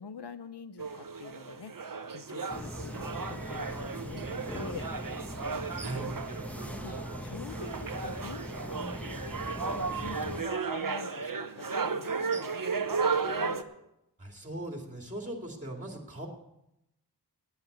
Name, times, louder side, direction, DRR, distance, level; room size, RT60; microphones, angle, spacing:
voice 1, 0.0-1.8 2.1-4.9 6.0-6.1 6.8-9.4 9.7-13.6, left 5 dB, 80° left, 13 dB, 0.7 m, -45 dB
sound 1, 0.8-13.6, right 5 dB, 55° right, 0.8 m, -34 dB
sound 2, 2.5-10.4, equal, 5° left, 1.0 m, -40 dB
voice 2, 14.2-16.3, right 1 dB, 20° right, 1 dB, 2.4 m, -39 dB
9.7 x 9.4 x 7.9 m, 0.85 s
wide cardioid pair, 45°, 40 cm